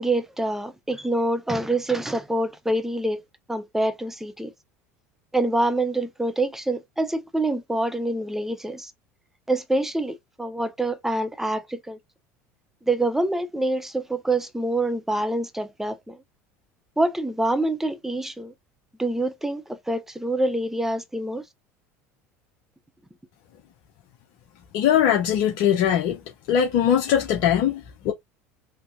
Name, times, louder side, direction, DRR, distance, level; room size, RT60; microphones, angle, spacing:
voice 1, 0.0-3.2 3.5-4.5 5.3-8.9 9.5-12.0 12.9-16.2 17.0-18.5 19.0-21.4, right 1 dB, 5° right, 0.7 m, -26 dB
voice 2, 24.7-26.2 26.5-28.1, left 9 dB, 60° left, 0.8 m, -21 dB
3.7 x 2.9 x 2.6 m
hypercardioid pair, 80°, 8 cm